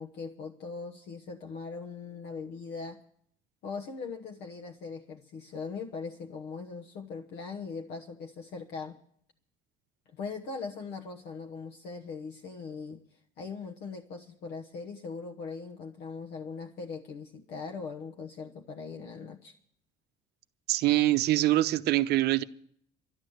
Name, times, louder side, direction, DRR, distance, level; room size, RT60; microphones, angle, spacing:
voice 1, 0.0-3.0 3.6-9.0 10.1-13.0 13.4-19.5, left 4 dB, 65° left, 1.1 m, -40 dB
voice 2, 20.7-22.4, right 16 dB, 60° right, 0.7 m, -24 dB
12.0 x 11.5 x 7.9 m
cardioid pair, 140°, 19 cm